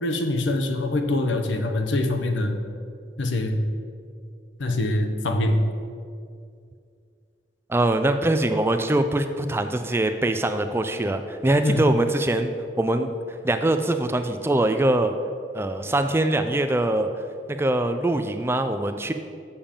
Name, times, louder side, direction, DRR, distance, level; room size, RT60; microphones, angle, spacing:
voice 1, 0.0-2.6 3.2-3.6 4.6-5.6 11.6-11.8, left 1 dB, 80° left, 5 dB, 0.9 m, -24 dB
voice 2, 7.7-12.5 12.8-15.1 15.5-17.1 17.5-19.1, right 1 dB, 15° right, 8 dB, 0.3 m, -23 dB
7.0 x 5.2 x 7.2 m, 2.3 s
head